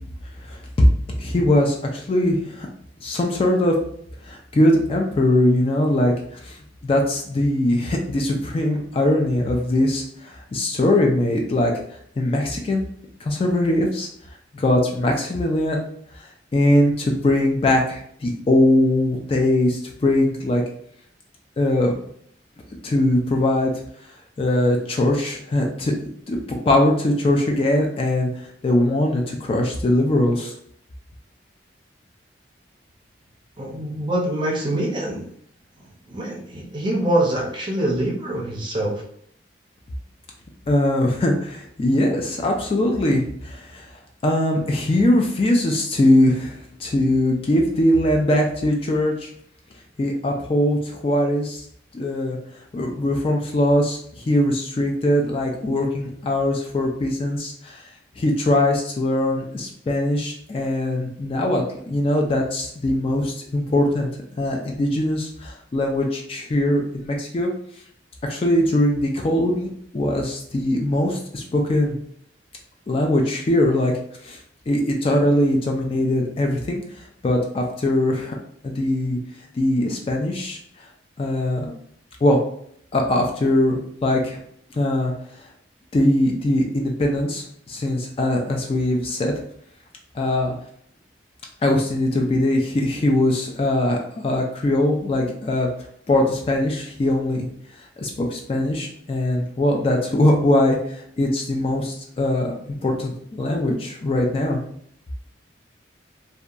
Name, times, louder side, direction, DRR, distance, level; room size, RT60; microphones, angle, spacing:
voice 1, 0.4-0.9 1.2-2.7 3.0-3.7 4.2-11.7 12.2-12.8 13.2-14.1 14.5-15.8 16.1-20.6 21.6-21.9 22.8-23.7 24.4-25.9 26.3-28.3 28.6-30.5 40.7-43.9 44.2-49.3 50.0-51.7 51.9-52.4 52.7-57.8 58.2-64.1 64.4-67.5 68.2-72.0 72.9-73.9 74.2-74.4 74.7-78.4 78.6-79.2 79.6-80.6 81.2-81.7 82.2-82.4 82.9-84.4 84.7-85.1 85.9-89.3 90.1-90.5 91.6-95.7 96.1-97.5 98.0-104.6, left 1 dB, 30° left, 2 dB, 0.3 m, -21 dB
voice 2, 33.6-35.3 36.1-39.0, right 1 dB, 25° right, -2 dB, 0.5 m, -24 dB
2.7 x 2.2 x 2.4 m, 0.65 s
head